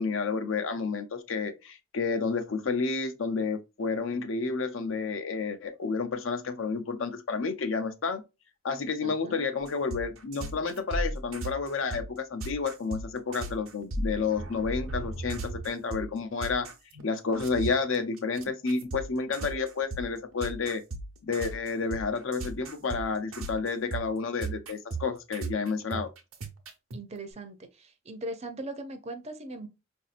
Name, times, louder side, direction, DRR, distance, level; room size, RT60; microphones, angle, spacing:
voice 1, 0.0-8.2 8.6-16.7 17.0-20.8 21.2-26.1, left 4 dB, 70° left, 0.6 m, -30 dB
voice 2, 9.0-9.4 25.9-26.1 26.9-29.7, right 2 dB, 30° right, 0.5 m, -40 dB
sound 1, 9.6-17.0 17.3-27.0, right 2 dB, 90° right, 0.9 m, -37 dB
4.9 x 2.7 x 2.4 m
head